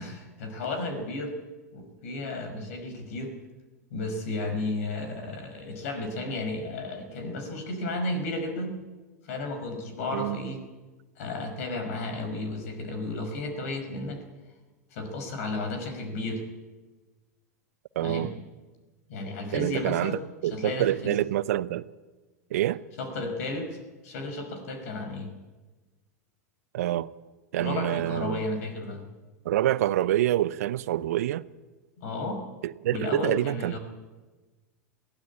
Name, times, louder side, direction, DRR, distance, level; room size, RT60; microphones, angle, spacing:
voice 1, 0.0-1.4 1.7-3.4 3.9-8.7 9.3-10.6 11.2-14.2 14.9-16.4 18.0-18.3 19.1-20.2 20.5-21.2 23.0-23.8 24.0-25.3 27.6-29.0 32.0-32.4 32.9-33.8, left 2 dB, 60° left, 5.6 m, -33 dB
voice 2, 18.0-18.3 19.5-21.8 22.5-22.8 26.7-27.1 27.5-28.4 29.4-31.4 32.6-33.8, right 13 dB, 65° right, 0.7 m, -27 dB
22.0 x 15.5 x 8.6 m
hypercardioid pair, 95°, 9 cm